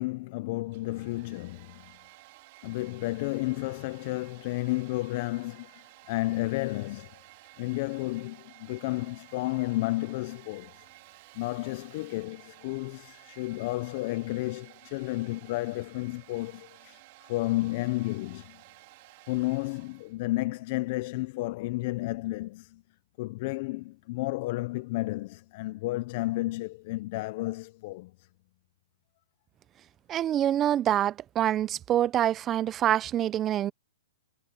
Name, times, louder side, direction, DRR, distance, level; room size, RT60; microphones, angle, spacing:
voice 1, 0.0-1.9 2.6-7.2 7.6-10.9 11.3-18.6 19.3-22.8 23.2-28.3, left 20 dB, 40° left, 0.4 m, -32 dB
Domestic sounds home sounds, 0.6-20.2, right 21 dB, 40° right, 3.0 m, -54 dB
voice 2, 30.1-33.7, right 11 dB, 20° right, 0.4 m, -26 dB
hypercardioid pair, 160°, 0 cm